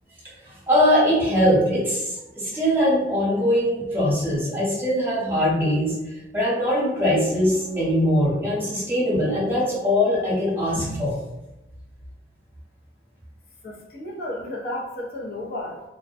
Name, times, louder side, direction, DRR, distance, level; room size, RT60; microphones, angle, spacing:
voice 1, 0.5-6.0 6.3-11.2, equal, 15° right, -7 dB, 0.8 m, -21 dB
voice 2, 13.6-15.8, left 1 dB, 60° left, -3 dB, 0.5 m, -33 dB
2.3 x 2.1 x 2.5 m, 0.96 s
head